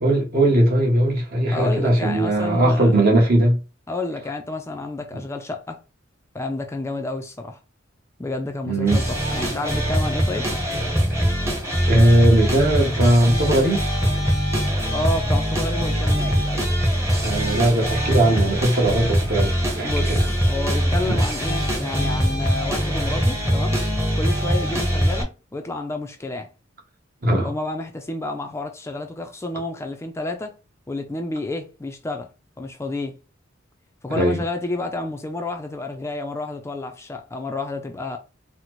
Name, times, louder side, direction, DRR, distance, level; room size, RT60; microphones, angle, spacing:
voice 1, 0.0-3.6 5.1-5.2 8.6-9.0 11.9-13.9 17.2-20.2 21.1-21.2 27.2-27.5 34.1-34.4, right 1 dB, 50° right, 1.1 m, -19 dB
voice 2, 1.5-3.0 3.9-5.8 6.3-7.6 8.2-10.5 14.9-16.7 19.8-23.8 24.1-26.5 27.4-30.6 30.9-32.3 32.6-33.2 34.0-38.2, left 2 dB, 15° left, 0.3 m, -30 dB
sound 1, 8.9-25.2, equal, 15° right, 0.8 m, -22 dB
4.1 x 2.0 x 2.9 m
head